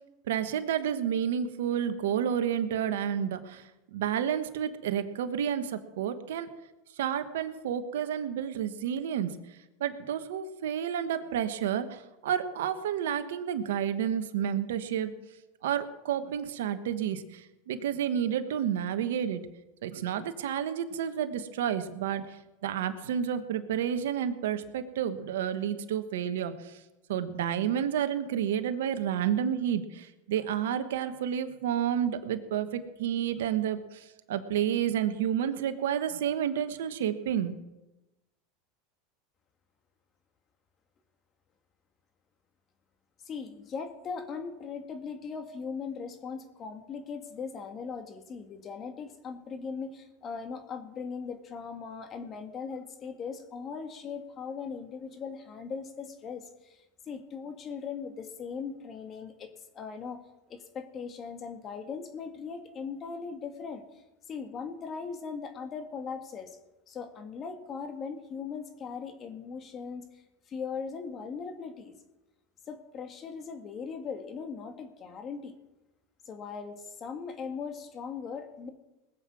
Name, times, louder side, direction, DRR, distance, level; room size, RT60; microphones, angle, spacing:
voice 1, 0.3-6.5 7.0-9.4 9.8-15.1 15.6-19.4 19.8-26.8 27.1-37.5, right 9 dB, 80° right, 9 dB, 1.2 m, -30 dB
voice 2, 43.3-60.2 60.5-63.8 64.3-66.6 66.9-71.9 72.7-75.5 76.3-78.7, left 5 dB, 35° left, 6 dB, 1.9 m, -39 dB
20.5 x 7.8 x 6.2 m, 1.0 s
hypercardioid pair, 105°, 0 cm